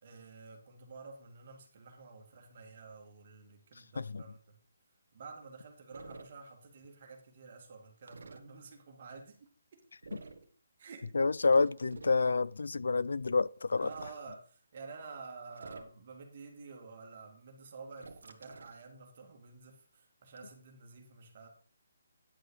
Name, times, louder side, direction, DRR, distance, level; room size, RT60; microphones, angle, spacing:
voice 1, 0.0-4.6 5.1-9.8 10.8-11.2 13.8-21.5, right 4 dB, 35° right, 2.4 m, -50 dB
sound 1, 5.9-6.3 8.1-8.4 10.0-10.5 11.4-12.2 13.7-14.2 15.5-16.1 18.0-18.8, right 3 dB, 90° right, 1.5 m, -50 dB
voice 2, 11.1-13.9, left 4 dB, 85° left, 0.4 m, -28 dB
10.5 x 6.4 x 4.9 m
hypercardioid pair, 175°, 0 cm